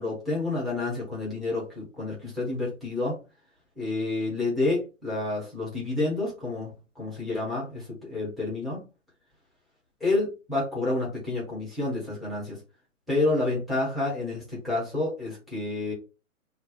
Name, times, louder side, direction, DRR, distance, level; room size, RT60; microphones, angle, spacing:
voice 1, 0.0-3.2 3.8-8.8 10.0-12.6 13.1-15.9, left 2 dB, ahead, -5 dB, 0.8 m, -29 dB
3.3 x 2.0 x 3.9 m, 0.30 s
figure-of-eight pair, 125°, 42 cm